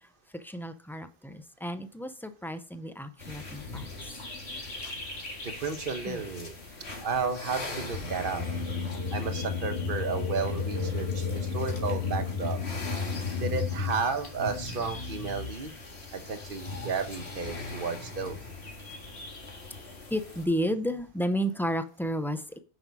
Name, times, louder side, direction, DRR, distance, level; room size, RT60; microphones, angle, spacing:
voice 1, 0.0-4.1 6.1-6.2 20.1-22.6, equal, 5° left, 0.5 m, -32 dB
sound 1, 3.2-20.4, left 4 dB, 85° left, 2.1 m, -35 dB
voice 2, 5.4-6.5 7.0-8.4 9.1-12.6 12.9-13.0 13.4-15.7 16.1-18.4, right 5 dB, 55° right, 1.2 m, -33 dB
9.4 x 5.5 x 4.7 m
omnidirectional pair, 1.1 m